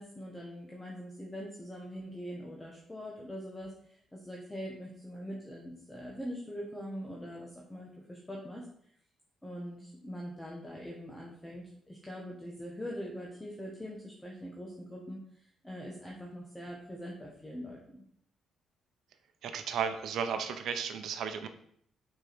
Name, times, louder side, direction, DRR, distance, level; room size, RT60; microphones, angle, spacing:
voice 1, 0.0-8.7 9.4-18.0, equal, 10° left, -2 dB, 1.5 m, -43 dB
voice 2, 19.4-21.5, right 7 dB, 75° right, 8 dB, 0.8 m, -34 dB
6.3 x 4.8 x 6.2 m, 0.66 s
cardioid pair, 90°, 0 cm